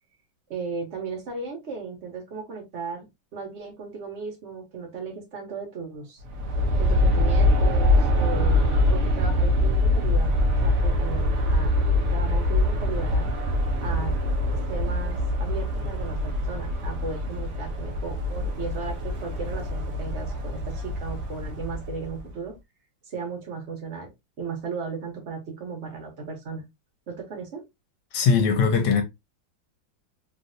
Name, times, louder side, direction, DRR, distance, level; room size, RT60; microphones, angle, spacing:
voice 1, 0.5-3.1 3.3-6.2 6.8-11.7 12.1-13.3 13.8-14.1 14.6-22.6 23.1-24.1 24.4-26.7 27.1-27.6, right 4 dB, 45° right, 1.0 m, -36 dB
Aircraft, 6.2-22.3, left 1 dB, 80° right, 0.6 m, -24 dB
voice 2, 28.1-29.0, left 5 dB, 70° left, 1.3 m, -20 dB
3.3 x 2.5 x 2.5 m
omnidirectional pair, 2.1 m